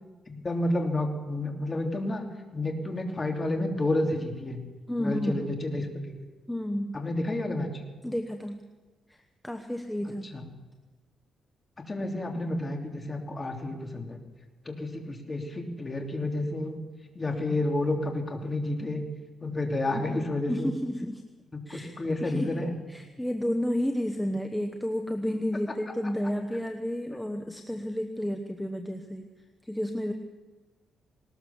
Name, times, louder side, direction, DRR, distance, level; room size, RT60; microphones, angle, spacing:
voice 1, 0.3-2.2 2.5-4.6 5.0-6.2 6.9-7.8 10.3-10.4 11.9-14.2 14.6-16.7 17.1-19.0 19.4-20.7 21.7-22.8, left 1 dB, 25° left, 3 dB, 3.0 m, -30 dB
voice 2, 4.9-5.6 6.5-7.0 8.0-8.6 9.1-9.2 9.4-10.3 20.5-21.2 21.7-29.2 29.6-30.1, equal, 5° left, 4 dB, 1.1 m, -31 dB
19.5 x 19.0 x 7.1 m, 1.2 s
cardioid pair, 140°, 0 cm